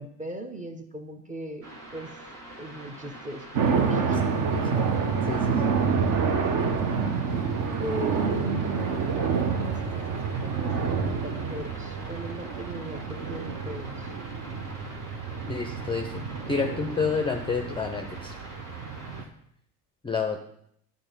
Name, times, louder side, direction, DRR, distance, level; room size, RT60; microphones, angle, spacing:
voice 1, 0.0-2.1 2.5-4.3 7.8-9.2 9.5-10.1 10.4-14.1, right 1 dB, 15° right, 7 dB, 0.9 m, -39 dB
sound 1, 1.6-19.2, right 1 dB, 65° right, 2.4 m, -44 dB
sound 2, 3.5-19.2, right 5 dB, 45° right, 1.0 m, -28 dB
voice 2, 5.3-5.8 15.5-16.1 16.5-18.3 20.0-20.4, left 5 dB, 10° left, 4 dB, 0.5 m, -29 dB
10.0 x 3.6 x 5.4 m, 0.72 s
hypercardioid pair, 70°, 48 cm